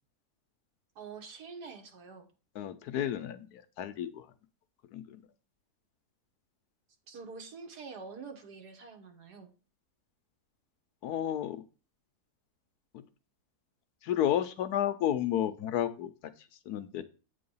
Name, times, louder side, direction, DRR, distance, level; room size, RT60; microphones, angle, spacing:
voice 1, 1.0-2.3 7.1-9.5, right 5 dB, 80° right, 4 dB, 1.9 m, -46 dB
voice 2, 2.6-4.2 4.9-5.0 11.0-11.6 14.0-16.1 16.7-17.1, left 10 dB, 80° left, 12 dB, 1.2 m, -31 dB
8.5 x 3.9 x 5.4 m, 0.34 s
omnidirectional pair, 1.7 m